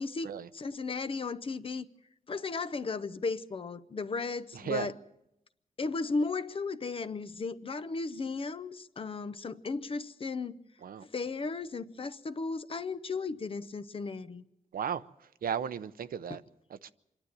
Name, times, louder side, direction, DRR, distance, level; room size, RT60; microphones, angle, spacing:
voice 1, 0.5-1.9 2.3-4.9 5.8-10.6 11.0-14.4, left 4 dB, 40° left, 0.8 m, -35 dB
voice 2, 4.5-4.9 10.8-11.1 14.7-15.0 15.4-16.4 16.8-16.9, right 7 dB, 80° right, 0.7 m, -34 dB
26.0 x 12.0 x 9.6 m
wide cardioid pair, 165°, 15 cm